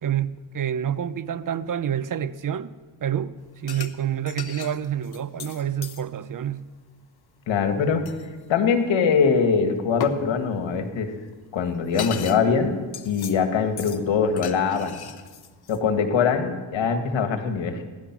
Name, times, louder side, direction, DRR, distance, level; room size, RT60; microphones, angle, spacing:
voice 1, 0.0-2.7 3.0-6.7, right 9 dB, 45° right, 0.7 m, -28 dB
sound 1, 3.7-4.0 4.3-6.0 8.1-8.3 10.0-10.2 11.3-11.4 11.7-12.4 12.7-13.4 13.8-14.0 14.4-15.8, left 8 dB, 55° left, 1.2 m, -36 dB
voice 2, 7.5-8.0 8.5-11.1 11.5-12.8 13.1-15.0 15.7-17.8, left 6 dB, 80° left, 1.9 m, -22 dB
16.5 x 11.5 x 6.0 m
cardioid pair, 70°, 46 cm